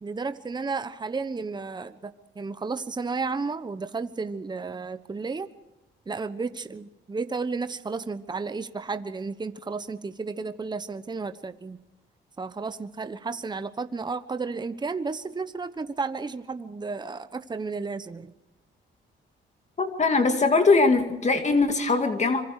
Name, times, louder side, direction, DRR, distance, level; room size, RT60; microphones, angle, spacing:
voice 1, 0.0-5.5 6.1-11.8 12.4-18.3, right 4 dB, 20° right, 11 dB, 1.1 m, -33 dB
voice 2, 19.8-22.4, left 3 dB, 35° left, 6 dB, 2.2 m, -21 dB
25.5 x 23.5 x 4.9 m, 0.99 s
cardioid pair, 90°, 20 cm